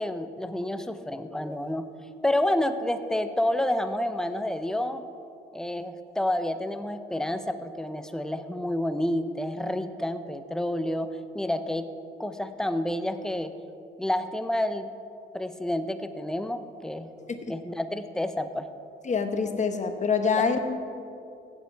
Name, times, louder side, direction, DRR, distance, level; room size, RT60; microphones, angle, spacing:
voice 1, 0.0-1.9 2.2-5.0 5.5-11.9 12.2-13.5 14.0-14.9 15.3-17.1 17.5-18.7, left 1 dB, 5° left, 9 dB, 0.6 m, -29 dB
voice 2, 19.1-20.8, left 5 dB, 35° left, 7 dB, 1.1 m, -26 dB
15.5 x 7.6 x 4.6 m, 2.6 s
cardioid pair, 90°, 20 cm